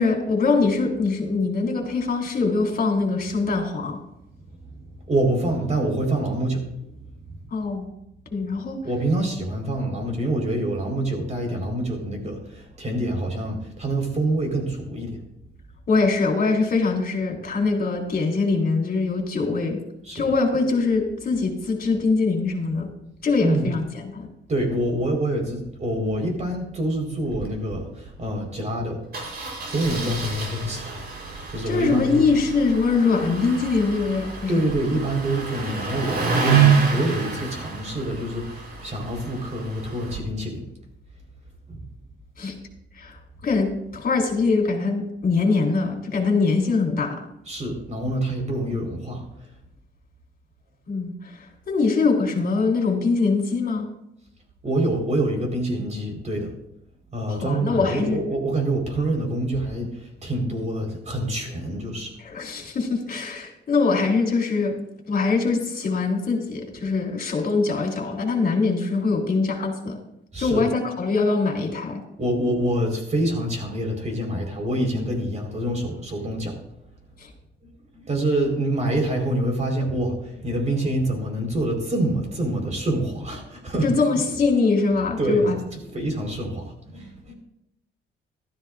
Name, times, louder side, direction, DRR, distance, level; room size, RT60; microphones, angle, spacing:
voice 1, 0.0-4.0 7.5-7.9 8.3-8.8 15.9-19.8 20.1-22.9 23.2-24.3 31.7-34.6 42.4-42.5 43.0-43.2 43.4-47.2 50.9-53.9 57.3-58.2 62.2-64.8 65.1-70.0 70.4-72.0 77.2-77.3 83.8-85.6, left 4 dB, 50° left, 2 dB, 3.4 m, -23 dB
voice 2, 4.6-7.4 8.8-15.2 20.0-20.3 23.4-23.7 24.5-29.0 29.7-32.3 34.5-40.6 41.7-41.8 47.5-49.5 54.6-56.5 57.1-62.1 70.3-70.7 72.2-76.6 77.9-83.9 85.2-85.5 85.8-87.3, right 1 dB, 35° right, 2 dB, 4.4 m, -26 dB
Engine starting, 27.2-27.5 27.7-27.8 28.1-28.2 29.1-40.2, right 6 dB, 50° right, 4.0 m, -27 dB
15.5 x 13.0 x 2.5 m, 0.80 s
cardioid pair, 90°, 20 cm